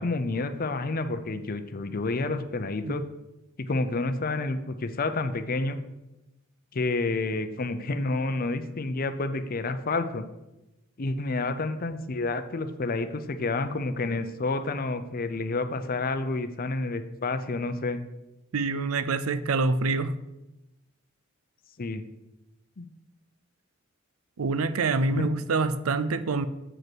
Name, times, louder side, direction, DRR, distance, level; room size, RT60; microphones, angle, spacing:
voice 1, 0.0-3.0 3.7-5.8 6.7-10.2 11.0-18.0 21.8-22.0 22.8-22.9 25.1-25.3, left 3 dB, 45° left, 10 dB, 0.6 m, -29 dB
voice 2, 18.5-20.1 24.4-26.5, right 3 dB, 80° right, 13 dB, 0.5 m, -26 dB
7.5 x 5.3 x 6.1 m, 0.96 s
head